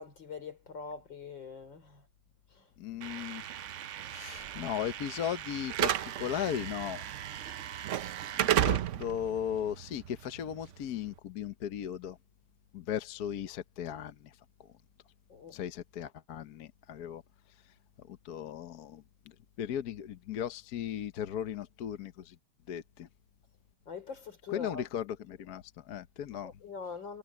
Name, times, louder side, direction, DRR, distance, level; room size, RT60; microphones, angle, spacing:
voice 1, 0.0-2.0 2.5-2.7 15.3-15.6 23.9-24.9 26.4-27.2, left 5 dB, 75° left, 4.5 m, -43 dB
voice 2, 2.8-3.4 4.0-7.1 8.6-12.2 12.7-14.3 14.6-14.7 15.5-17.2 18.1-19.0 19.6-22.3 22.7-23.1 24.5-26.5, left 9 dB, 60° left, 1.3 m, -37 dB
Slam / Alarm, 3.0-11.1, right 11 dB, 80° right, 0.6 m, -34 dB
omnidirectional pair, 2.0 m